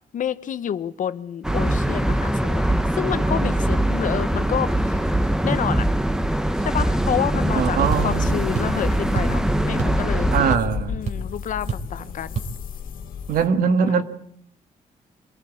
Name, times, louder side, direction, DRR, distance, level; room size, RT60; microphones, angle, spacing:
voice 1, 0.1-2.6 2.9-5.9 6.6-10.4 10.9-12.4 13.8-14.0, left 9 dB, 70° left, 1.1 m, -29 dB
sound 1, 1.4-10.6, right 1 dB, 5° right, 1.1 m, -22 dB
voice 2, 7.5-8.4 10.3-11.0 13.3-14.0, right 6 dB, 85° right, 2.0 m, -21 dB
sound 2, 7.8-13.5, left 6 dB, 90° left, 2.0 m, -33 dB
sound 3, 7.9-8.1 8.5-8.8 9.2-9.4 9.8-10.0 10.3-10.8 11.1-11.2 11.7-11.9 12.4-12.5, right 6 dB, 55° right, 3.5 m, -28 dB
25.0 x 16.0 x 8.5 m
cardioid pair, 105°, 14 cm